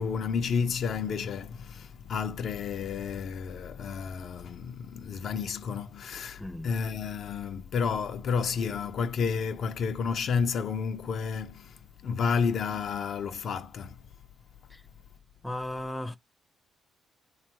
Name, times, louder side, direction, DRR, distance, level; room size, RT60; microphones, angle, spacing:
voice 1, 0.0-11.7 12.0-13.9, left 6 dB, 65° left, 0.5 m, -31 dB
voice 2, 6.4-6.7 14.7-14.8 15.4-16.2, left 1 dB, 10° left, 0.5 m, -36 dB
2.9 x 2.3 x 2.7 m
cardioid pair, 90°, 0 cm